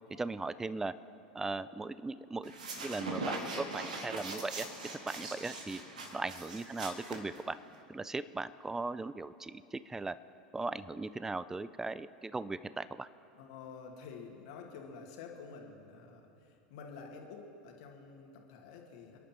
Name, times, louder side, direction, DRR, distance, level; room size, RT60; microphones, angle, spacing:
voice 1, 0.2-0.9 1.3-2.5 2.8-4.7 5.1-5.8 6.1-7.6 7.9-10.2 10.5-13.1, right 3 dB, 10° right, 15 dB, 0.5 m, -38 dB
sound 1, 2.4-7.8, right 2 dB, 75° right, 2.3 m, -41 dB
voice 2, 13.3-19.2, left 5 dB, 60° left, 1 dB, 2.4 m, -49 dB
27.5 x 11.0 x 4.5 m, 2.7 s
figure-of-eight pair, 80°, 4 cm